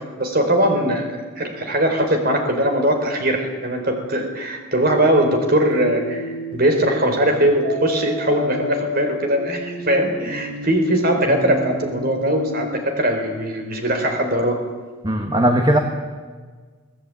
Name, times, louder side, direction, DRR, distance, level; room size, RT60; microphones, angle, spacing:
voice 1, 0.2-1.1 1.4-14.6, right 1 dB, 45° right, 4 dB, 4.1 m, -20 dB
sound 1, 5.7-6.5 7.6-12.7, left 1 dB, 90° right, 5.8 m, -31 dB
voice 2, 15.0-15.8, right 1 dB, 20° right, 4 dB, 1.6 m, -17 dB
23.5 x 17.5 x 9.0 m, 1.5 s
head